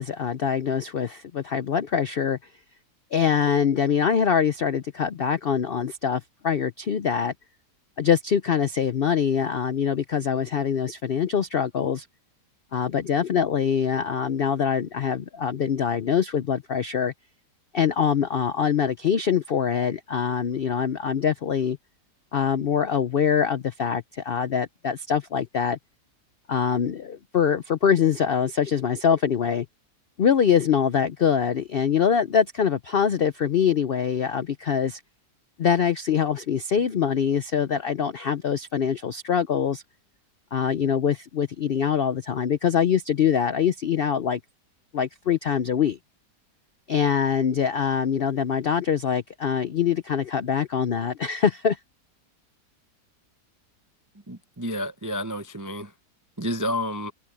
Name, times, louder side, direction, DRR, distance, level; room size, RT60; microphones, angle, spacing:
voice 1, 0.0-2.4 3.1-7.3 8.0-12.1 12.7-17.1 17.7-21.8 22.3-25.8 26.5-29.7 30.2-35.0 35.6-39.8 40.5-44.4 44.9-46.0 46.9-51.8, left 7 dB, 80° left, 0.5 m, -24 dB
voice 2, 54.3-55.9 56.4-57.1, equal, 30° right, 0.3 m, -30 dB
omnidirectional pair, 1.8 m